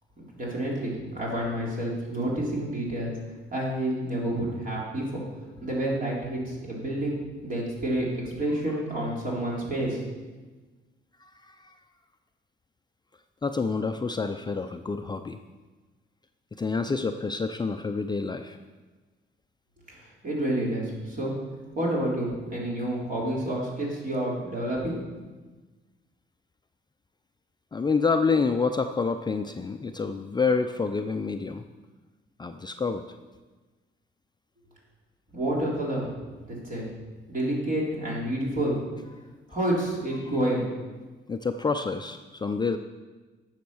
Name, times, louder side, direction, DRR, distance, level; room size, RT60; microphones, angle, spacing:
voice 1, 0.2-3.2 3.5-5.2 5.6-10.0 20.2-21.3 21.8-25.0 35.3-36.1 36.5-36.9 37.3-38.8 39.5-40.7, right 1 dB, 45° right, -4 dB, 3.9 m, -29 dB
voice 2, 11.2-11.8 13.4-15.4 16.6-18.6 27.7-31.6 32.4-33.0 41.3-42.8, left 4 dB, 20° left, 7 dB, 0.5 m, -28 dB
10.0 x 6.5 x 6.3 m, 1.3 s
cardioid pair, 90°, 20 cm